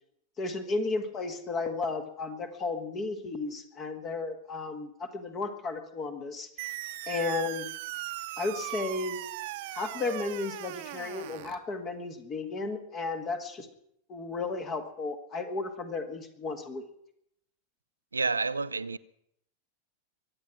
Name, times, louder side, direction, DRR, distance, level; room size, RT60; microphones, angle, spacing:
voice 1, 0.4-6.5 7.1-7.7 8.4-9.2 9.7-13.7 14.1-16.9, left 3 dB, 30° left, 1.6 m, -34 dB
sound 1, 6.6-11.6, right 16 dB, 50° right, 1.0 m, -38 dB
voice 2, 18.1-19.0, right 4 dB, 80° right, 0.5 m, -29 dB
23.5 x 8.7 x 6.0 m
figure-of-eight pair, 90°, 0 cm